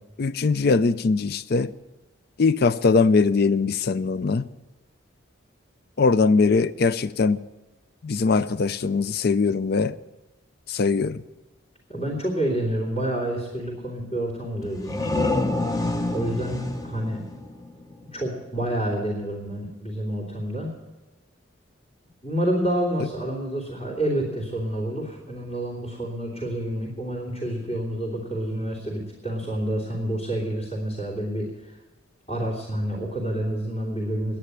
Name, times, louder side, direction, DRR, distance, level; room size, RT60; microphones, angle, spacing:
voice 1, 0.2-1.7 2.4-4.5 6.0-7.4 8.0-10.0 10.7-11.2, left 4 dB, 50° left, 0.4 m, -21 dB
voice 2, 11.9-15.1 16.1-17.3 18.1-20.7 22.2-31.5 32.3-34.4, right 1 dB, 35° left, 3.1 m, -28 dB
sound 1, 14.6-18.2, left 2 dB, 20° left, 0.8 m, -28 dB
10.0 x 10.0 x 9.7 m
head